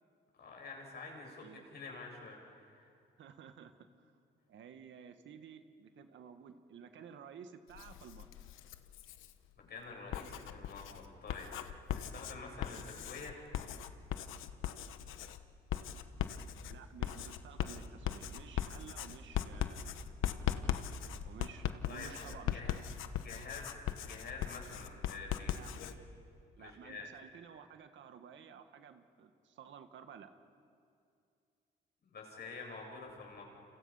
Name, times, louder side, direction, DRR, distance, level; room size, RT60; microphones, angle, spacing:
voice 1, 0.4-2.9 9.7-13.4 21.9-22.1 22.5-22.7 23.2-25.5 25.8-26.0 26.6-27.1 32.0-33.4, left 4 dB, 55° left, 0 dB, 7.7 m, -48 dB
voice 2, 3.2-4.1 4.5-8.3 16.7-20.0 21.2-22.8 25.5-25.7 26.6-30.3, right 7 dB, 70° right, 8 dB, 1.7 m, -53 dB
Writing, 7.7-9.3 9.9-25.9, left 11 dB, 90° left, 1.1 m, -39 dB
29.5 x 27.5 x 5.8 m, 2.4 s
cardioid pair, 90°, 20 cm